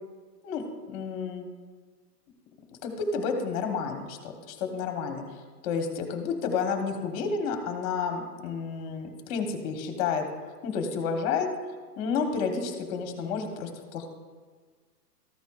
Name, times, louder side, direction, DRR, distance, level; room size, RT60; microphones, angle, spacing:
voice 1, 0.4-1.5 2.8-10.2 10.6-11.5 12.0-14.1, left 5 dB, 25° left, 5 dB, 1.0 m, -31 dB
13.5 x 9.2 x 2.3 m, 1.5 s
hypercardioid pair, 145°, 49 cm